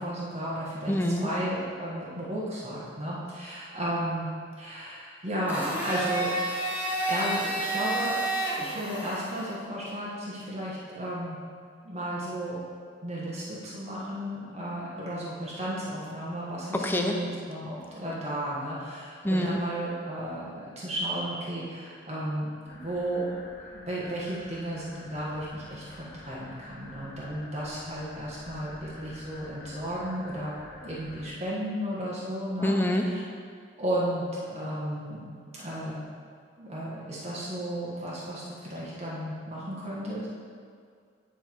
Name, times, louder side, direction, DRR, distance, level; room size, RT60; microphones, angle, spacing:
voice 1, 0.0-0.9 1.2-4.3 4.6-6.3 7.1-8.2 8.5-11.4 11.8-12.6 13.0-23.3 23.7-30.5 30.8-32.7 33.8-35.2 35.5-36.0 36.6-40.3, right 1 dB, 35° right, -7 dB, 1.4 m, -34 dB
voice 2, 0.9-1.3 16.7-17.2 19.2-19.6 32.6-33.1, left 1 dB, 10° left, 2 dB, 0.5 m, -26 dB
Domestic sounds home sounds, 5.5-9.5, right 2 dB, 10° right, 1.1 m, -30 dB
sound 1, 22.7-31.3, left 2 dB, 50° left, 1.6 m, -49 dB
9.0 x 4.5 x 4.5 m, 2.2 s
head